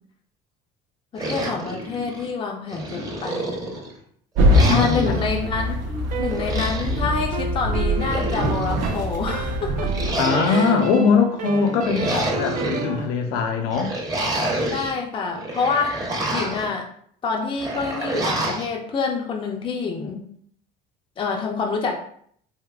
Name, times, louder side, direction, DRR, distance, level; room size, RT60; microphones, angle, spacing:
voice 1, 1.1-3.7 4.7-9.9 10.5-10.7 12.9-13.0 14.7-16.0 16.3-16.9 17.2-20.2 21.2-22.0, left 5 dB, 25° left, 1 dB, 0.4 m, -27 dB
sound 1, 1.2-2.3 2.7-3.9 4.5-5.2 6.3-7.0 7.8-8.8 9.9-10.9 11.6-12.8 13.7-14.9 15.3-16.7 17.6-18.7, right 1 dB, 20° right, 0.7 m, -28 dB
sound 2, 4.3-10.2, equal, 80° right, 0.7 m, -23 dB
voice 2, 4.6-5.2 10.1-14.0, left 5 dB, 80° left, 5 dB, 0.5 m, -21 dB
sound 3, 5.1-6.9 7.3-13.1, right 5 dB, 45° right, 0.4 m, -32 dB
3.4 x 2.7 x 2.3 m, 0.63 s
cardioid pair, 110°, 20 cm